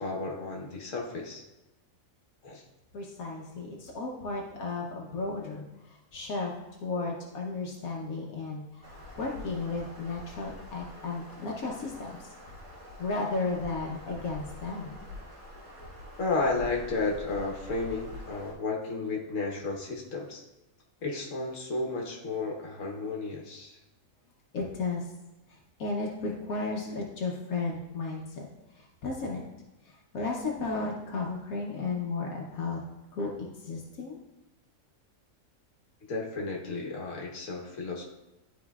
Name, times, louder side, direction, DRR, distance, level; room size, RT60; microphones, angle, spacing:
voice 1, 0.0-1.4 2.4-2.6 16.2-20.4 21.0-23.8 36.1-38.0, left 3 dB, 65° left, -1 dB, 1.5 m, -33 dB
voice 2, 2.9-5.6 6.1-6.5 6.8-12.2 13.0-14.9 24.5-25.0 25.8-28.5 29.0-29.4 29.9-32.8 33.1-34.2, left 3 dB, 85° left, -2 dB, 1.3 m, -34 dB
sound 1, 8.8-18.5, left 1 dB, 65° right, 1.8 m, -46 dB
11.5 x 4.4 x 2.4 m, 1.0 s
omnidirectional pair, 1.4 m